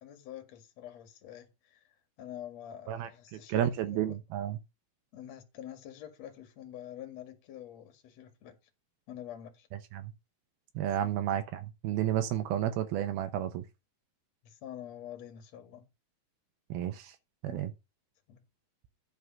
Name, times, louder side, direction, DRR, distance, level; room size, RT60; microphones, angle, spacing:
voice 1, 0.0-1.8 2.2-4.2 5.1-8.6 9.1-9.7 11.0-11.3 14.4-15.9 17.4-17.7 18.3-18.4, left 11 dB, 50° left, 2.7 m, -46 dB
voice 2, 2.9-4.6 9.9-10.1 10.8-13.6 16.7-17.1 17.4-17.7, right 11 dB, 80° right, 2.8 m, -32 dB
11.5 x 4.9 x 5.7 m
omnidirectional pair, 4.4 m